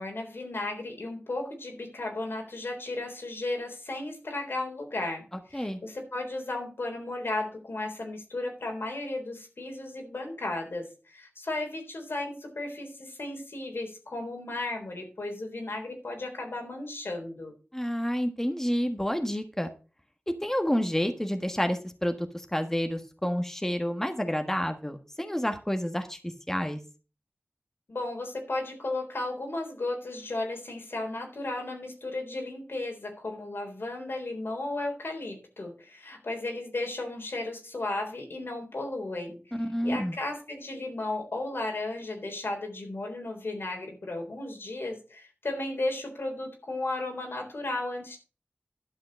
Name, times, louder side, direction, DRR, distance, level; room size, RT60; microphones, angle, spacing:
voice 1, 0.0-5.2 5.5-17.5 27.9-39.5 39.8-48.2, left 2 dB, 85° left, 2 dB, 3.7 m, -34 dB
voice 2, 17.7-19.7 20.3-26.2 26.5-26.8 39.6-40.1, equal, 10° left, 6 dB, 1.5 m, -29 dB
11.5 x 5.8 x 6.2 m, 0.34 s
wide cardioid pair, 55°, 4 cm